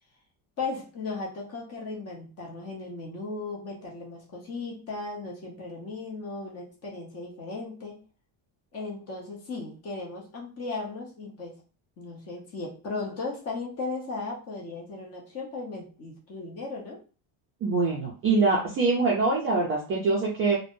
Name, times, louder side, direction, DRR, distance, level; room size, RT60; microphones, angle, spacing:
voice 1, 0.6-8.0 8.7-11.6 12.0-17.0, left 3 dB, 30° left, -2 dB, 0.8 m, -36 dB
voice 2, 17.6-20.6, right 3 dB, 30° right, -3 dB, 0.4 m, -24 dB
3.2 x 2.1 x 2.5 m, 0.36 s
cardioid pair, 175°, 49 cm